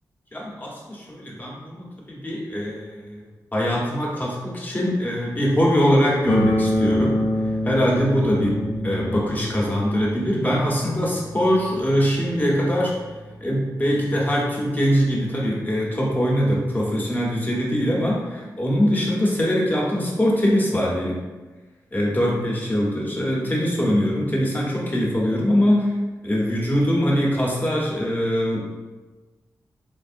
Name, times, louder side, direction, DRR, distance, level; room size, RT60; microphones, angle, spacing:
voice 1, 0.3-3.2 3.5-7.1 7.6-12.9 13.4-21.2 21.9-25.9 26.2-28.6, equal, 25° left, -4 dB, 1.1 m, -22 dB
sound 1, 6.3-16.2, equal, 60° left, 0.7 m, -28 dB
3.9 x 3.5 x 2.6 m, 1.2 s
cardioid pair, 70°, 7 cm